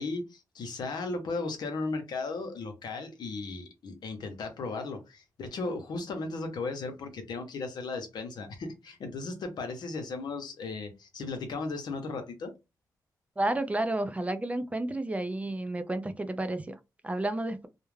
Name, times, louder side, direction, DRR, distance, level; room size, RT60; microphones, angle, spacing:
voice 1, 0.0-12.5, left 3 dB, 80° left, 0.7 m, -36 dB
voice 2, 13.4-16.8 17.0-17.7, right 1 dB, 20° right, 0.4 m, -31 dB
2.3 x 2.1 x 3.1 m
cardioid pair, 70°, 7 cm